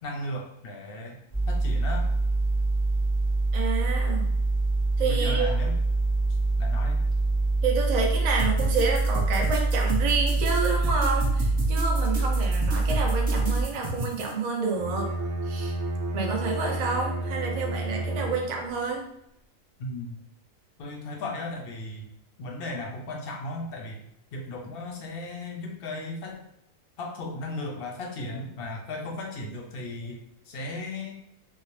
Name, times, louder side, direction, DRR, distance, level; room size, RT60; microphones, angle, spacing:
voice 1, 0.0-1.2 1.5-2.1 5.0-5.8 6.6-7.0 19.8-20.2 20.8-22.1 22.4-24.0 24.3-26.4 27.0-30.2 30.5-31.1, left 2 dB, 55° left, 1 dB, 0.7 m, -36 dB
sound 1, 1.3-13.6, right 2 dB, 30° left, 0.3 m, -25 dB
voice 2, 3.5-4.3 5.0-5.5 7.6-15.1 15.4-15.7 16.1-19.1, right 4 dB, 65° right, 0 dB, 0.4 m, -29 dB
sound 2, 8.4-14.3, right 1 dB, 35° right, 1.0 m, -33 dB
Bowed string instrument, 14.7-18.8, right 2 dB, 85° right, 1.0 m, -31 dB
2.7 x 2.0 x 3.0 m, 0.78 s
omnidirectional pair, 1.4 m